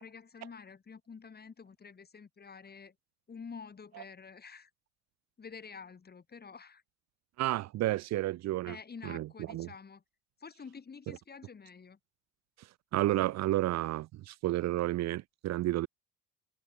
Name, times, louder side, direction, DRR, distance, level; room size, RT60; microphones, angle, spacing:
voice 1, 0.0-3.0 3.3-4.7 5.4-6.8 8.7-10.0 10.4-12.0, left 5 dB, 30° left, 1.9 m, -48 dB
voice 2, 7.4-8.8 9.0-9.7 12.6-12.7 12.9-15.9, right 16 dB, 50° right, 0.7 m, -31 dB
hypercardioid pair, 55°, 34 cm